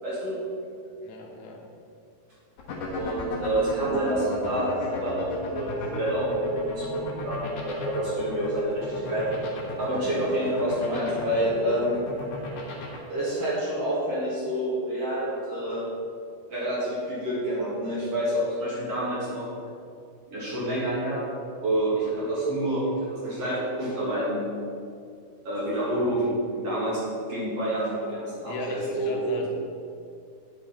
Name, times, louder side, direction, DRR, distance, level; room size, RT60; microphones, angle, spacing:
voice 1, 0.0-0.4 2.9-9.3 9.8-12.0 13.1-15.9 16.5-19.5 20.3-21.3 21.6-24.4 25.4-27.0 27.3-29.4, right 1 dB, 45° right, -7 dB, 2.6 m, -28 dB
voice 2, 1.0-1.6 28.4-29.5, left 2 dB, 80° left, 1 dB, 2.9 m, -35 dB
sound 1, 2.6-13.0, left 3 dB, 55° left, 1.9 m, -34 dB
9.7 x 8.0 x 4.2 m, 2.3 s
omnidirectional pair, 4.4 m